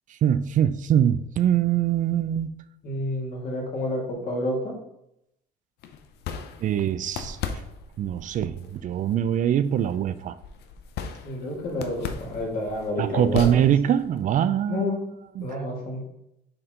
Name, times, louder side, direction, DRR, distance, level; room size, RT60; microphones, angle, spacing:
voice 1, 0.1-2.5 6.6-7.4 8.0-10.4 13.0-14.8 15.4-15.6, right 10 dB, 50° right, 13 dB, 0.4 m, -23 dB
voice 2, 2.8-4.7 11.2-13.6 14.7-15.1 15.4-16.1, left 1 dB, 60° left, -2 dB, 2.4 m, -29 dB
sound 1, 5.8-14.2, left 6 dB, 75° left, 0.6 m, -37 dB
6.7 x 4.3 x 3.7 m, 0.80 s
cardioid pair, 110°, 17 cm